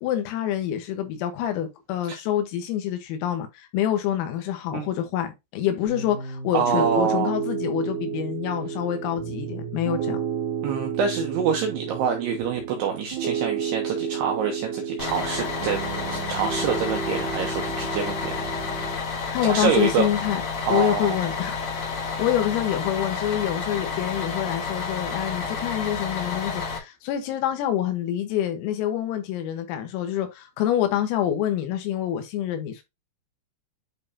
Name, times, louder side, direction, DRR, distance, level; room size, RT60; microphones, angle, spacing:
voice 1, 0.0-10.2 19.3-20.4 20.7-21.9 22.2-32.8, left 11 dB, 85° left, 4.0 m, -26 dB
Piano, 5.9-18.9, right 7 dB, 45° right, 3.0 m, -31 dB
voice 2, 6.5-7.3 10.6-18.4 19.4-20.1 20.7-21.2, right 6 dB, 80° right, 2.4 m, -26 dB
Bus, 15.0-26.8, left 5 dB, 70° left, 1.6 m, -30 dB
10.5 x 3.5 x 2.8 m
omnidirectional pair, 5.9 m